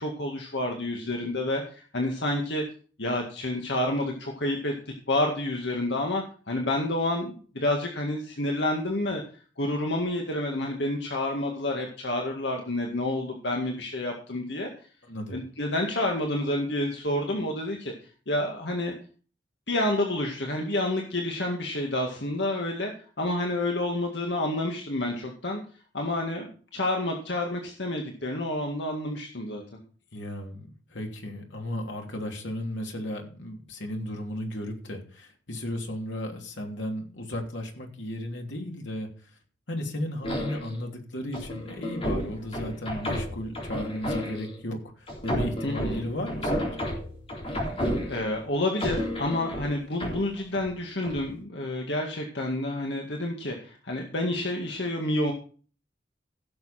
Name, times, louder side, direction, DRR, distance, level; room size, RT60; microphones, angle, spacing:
voice 1, 0.0-2.6 3.0-9.2 9.6-14.7 15.3-17.9 18.3-19.0 19.7-22.9 23.2-25.6 25.9-29.6 45.6-46.1 47.5-47.6 48.1-55.3, left 1 dB, 70° left, 1 dB, 1.9 m, -29 dB
voice 2, 15.1-15.4 30.1-39.1 39.7-46.8, left 1 dB, 90° left, 2 dB, 3.0 m, -35 dB
sound 1, 40.2-40.8 41.3-44.6 45.1-48.4 48.8-50.7 51.0-51.3, equal, 30° left, 3.7 m, -31 dB
16.0 x 7.2 x 4.3 m, 0.40 s
head